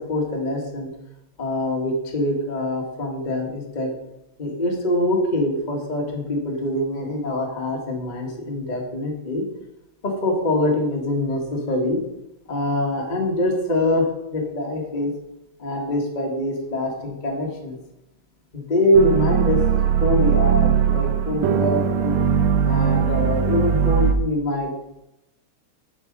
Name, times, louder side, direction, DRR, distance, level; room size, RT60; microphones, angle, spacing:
voice 1, 0.1-0.9 1.4-3.9 4.4-9.4 10.0-12.0 12.5-14.0 14.3-15.1 15.6-17.8 18.5-19.6 20.0-22.2 22.6-24.7, left 1 dB, 25° left, 0 dB, 0.9 m, -24 dB
sound 1, 18.9-24.1, right 8 dB, 75° right, 1.9 m, -20 dB
11.0 x 4.6 x 5.3 m, 0.88 s
omnidirectional pair, 3.4 m